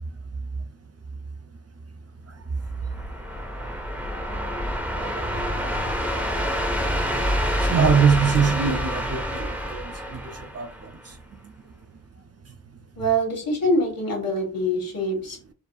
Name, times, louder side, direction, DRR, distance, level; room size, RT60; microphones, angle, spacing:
voice 1, 2.2-2.6 2.8-3.1 4.3-4.4 4.9-5.9 7.6-12.0 12.4-12.6, right 6 dB, 40° right, 0.5 m, -26 dB
sound 1, 2.6-11.1, equal, 5° right, 0.7 m, -27 dB
voice 2, 13.0-15.5, equal, 60° left, 1.8 m, -24 dB
6.8 x 2.6 x 2.4 m
wide cardioid pair, 120°, 37 cm